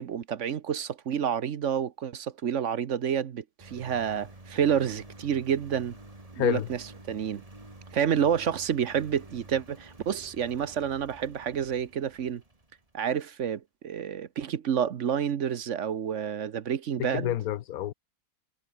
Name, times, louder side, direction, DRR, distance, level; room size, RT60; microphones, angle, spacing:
voice 1, 0.0-6.0 6.4-6.6 7.1-7.4 7.9-12.4 12.9-17.3, right 8 dB, 60° right, 1.2 m, -29 dB
Engine, 3.6-13.0, right 2 dB, 25° right, 2.9 m, -50 dB
voice 2, 6.4-6.7 17.0-17.9, left 13 dB, 80° left, 1.2 m, -28 dB
omnidirectional pair, 1.5 m